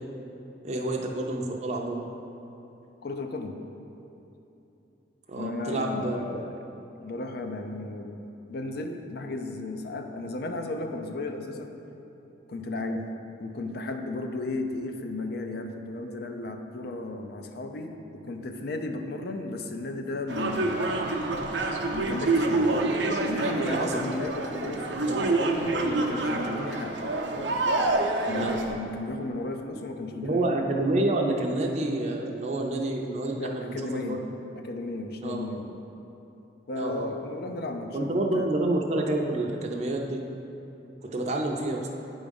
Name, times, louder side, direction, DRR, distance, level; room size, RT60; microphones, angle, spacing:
voice 1, 0.6-2.1 5.3-6.2 22.7-22.9 23.6-24.0 28.3-28.6 30.2-34.2 35.2-35.5 36.7-37.1 37.9-40.2 41.0-41.9, right 2 dB, 40° right, 0 dB, 0.5 m, -28 dB
voice 2, 3.0-3.6 5.4-6.7 7.0-8.2 8.5-11.7 12.5-13.1 13.4-20.9 21.9-22.7 23.2-27.1 28.2-30.5 33.4-34.2 34.5-35.8 36.7-38.5, left 2 dB, 60° left, 5 dB, 0.5 m, -34 dB
sound 1, 20.3-28.7, right 2 dB, 90° right, 0.6 m, -27 dB
8.9 x 3.6 x 5.3 m, 2.9 s
head